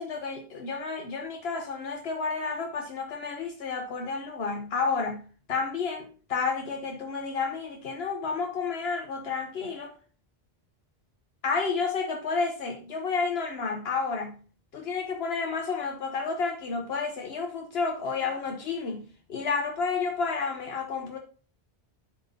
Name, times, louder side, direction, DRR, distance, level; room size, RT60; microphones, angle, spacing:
voice 1, 0.0-5.2 5.5-9.9 11.4-14.4 14.7-21.2, left 4 dB, 80° left, 1.1 m, -31 dB
10.0 x 5.8 x 2.7 m
omnidirectional pair, 1.0 m